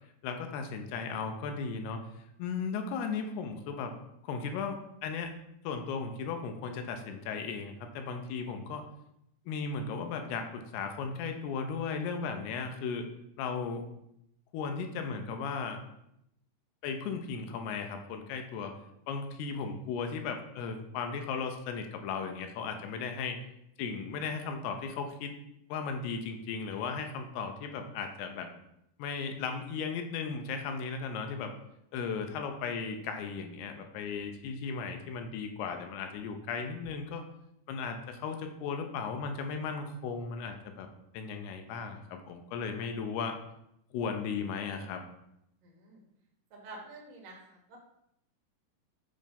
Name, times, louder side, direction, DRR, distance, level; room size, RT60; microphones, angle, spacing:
voice 1, 0.2-2.0 2.4-3.9 4.2-5.3 5.6-8.8 9.5-13.1 13.4-13.8 14.5-15.8 16.8-18.7 19.1-23.4 23.8-25.3 25.7-28.5 29.0-31.5 31.9-37.2 37.7-40.9 41.1-43.4 43.9-45.0, left 5 dB, 80° left, 5 dB, 2.7 m, -36 dB
voice 2, 45.6-46.0 46.5-47.8, right 2 dB, 85° right, -1 dB, 1.4 m, -49 dB
7.6 x 3.2 x 5.2 m, 0.79 s
omnidirectional pair, 4.8 m